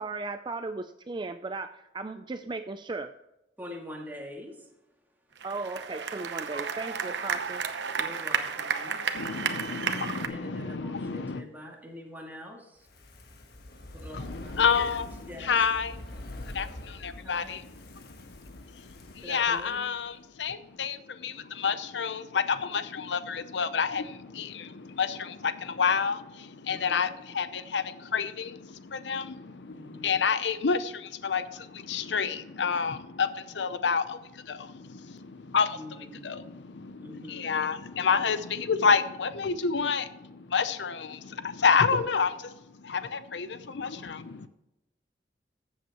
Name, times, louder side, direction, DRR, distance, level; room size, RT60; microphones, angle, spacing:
voice 1, 0.0-3.2 5.4-7.7, right 3 dB, 25° right, 9 dB, 0.4 m, -36 dB
voice 2, 3.6-4.7 8.0-9.0 10.2-12.9 13.9-14.6 15.2-15.5 17.2-17.7 18.5-19.8 26.6-27.1 29.7-30.2 35.7-36.3 37.0-37.5, left 1 dB, 10° right, -1 dB, 2.3 m, -45 dB
sound 1, 5.4-10.3, right 6 dB, 85° right, 0.9 m, -32 dB
voice 3, 9.1-11.4 14.1-44.5, left 6 dB, 85° left, 12 dB, 0.7 m, -29 dB
Fire, 12.8-20.1 20.4-20.5, left 1 dB, 65° left, 1.4 m, -45 dB
14.0 x 7.9 x 3.0 m, 0.92 s
head